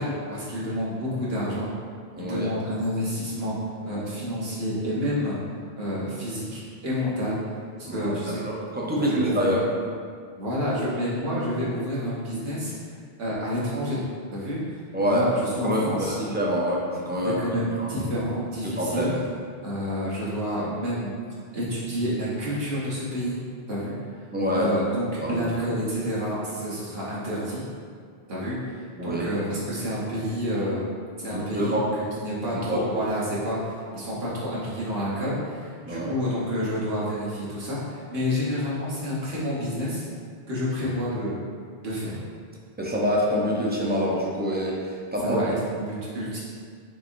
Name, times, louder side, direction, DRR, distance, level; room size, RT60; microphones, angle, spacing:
voice 1, 0.0-1.7 2.2-5.4 5.8-7.4 7.9-8.4 8.9-9.6 10.4-12.7 13.2-14.0 14.3-16.2 17.2-19.1 19.6-21.1 21.5-23.4 23.7-23.9 24.5-27.6 28.3-40.0 40.5-41.4 41.8-42.2 45.2-46.4, equal, 70° right, -7 dB, 1.3 m, -29 dB
voice 2, 2.2-2.5 7.8-9.6 14.9-15.3 15.6-17.4 17.8-17.9 18.6-19.1 24.3-24.7 25.2-25.5 29.0-29.3 31.3-31.8 32.5-32.8 35.9-36.1 42.8-45.5, equal, 15° right, -4 dB, 0.4 m, -26 dB
6.1 x 3.0 x 2.6 m, 2.1 s
omnidirectional pair, 1.1 m